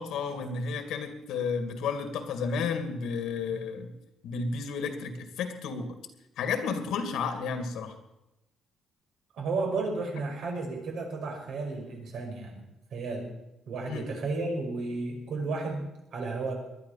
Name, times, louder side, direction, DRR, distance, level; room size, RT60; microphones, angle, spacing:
voice 1, 0.0-3.9 4.2-5.9 6.4-8.0 13.9-14.1, left 5 dB, 80° left, 7 dB, 2.3 m, -32 dB
voice 2, 9.4-12.6 12.9-13.3 13.7-16.6, right 3 dB, 65° right, 2 dB, 5.4 m, -33 dB
20.0 x 11.5 x 5.8 m, 0.93 s
cardioid pair, 150°, 0 cm